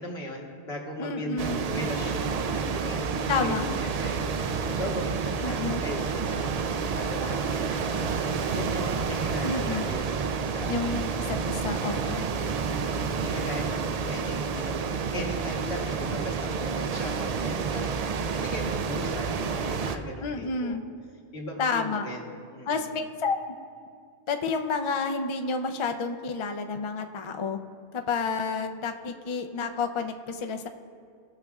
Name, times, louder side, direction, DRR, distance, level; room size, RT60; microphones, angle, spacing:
voice 1, 0.0-10.7 12.0-20.8 21.3-22.9, left 1 dB, 70° left, -1 dB, 1.5 m, -38 dB
voice 2, 1.0-1.6 3.3-3.6 5.4-5.8 9.4-9.8 10.7-12.2 20.2-20.8 21.6-22.1 22.7-23.6 24.3-27.6 27.9-30.7, left 4 dB, 50° left, 6 dB, 0.3 m, -30 dB
sound 1, 1.4-20.0, right 5 dB, 60° right, 0.4 m, -29 dB
17.5 x 6.5 x 2.3 m, 2.3 s
omnidirectional pair, 1.1 m